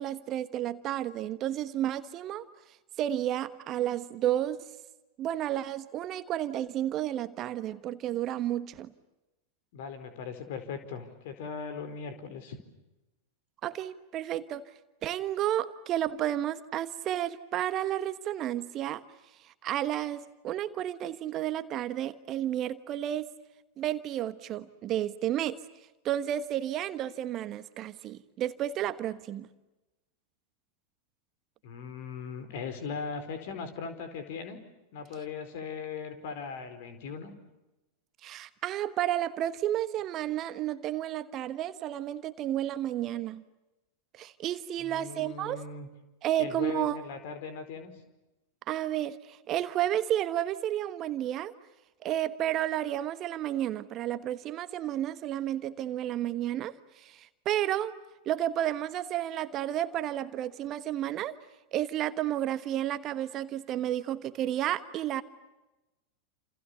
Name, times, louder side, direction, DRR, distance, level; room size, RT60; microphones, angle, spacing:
voice 1, 0.0-2.4 3.0-4.6 5.2-8.9 13.6-14.6 15.0-19.0 19.4-23.3 23.8-25.6 26.0-29.5 38.2-43.4 44.1-45.6 46.2-47.0 48.7-51.5 52.0-57.9 58.2-61.4 61.7-65.2, right 12 dB, 35° right, 13 dB, 1.3 m, -31 dB
voice 2, 9.7-12.6 31.6-34.6 34.9-37.3 44.8-45.9 46.4-47.9, left 5 dB, 50° left, 9 dB, 4.6 m, -39 dB
29.5 x 28.5 x 6.9 m, 1.0 s
figure-of-eight pair, 90°, 0 cm